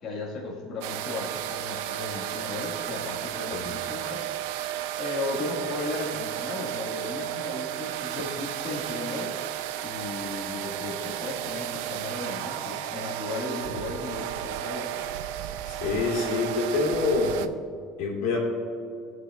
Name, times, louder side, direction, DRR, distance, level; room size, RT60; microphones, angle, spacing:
voice 1, 0.0-4.3 5.0-9.4 9.8-14.9, left 2 dB, 35° left, -6 dB, 1.5 m, -35 dB
sound 1, 0.8-17.5, right 12 dB, 85° right, 0.4 m, -33 dB
voice 2, 15.7-17.4 18.0-18.4, left 3 dB, 75° left, -3 dB, 2.3 m, -26 dB
17.5 x 6.4 x 2.3 m, 2.4 s
cardioid pair, 165°, 0 cm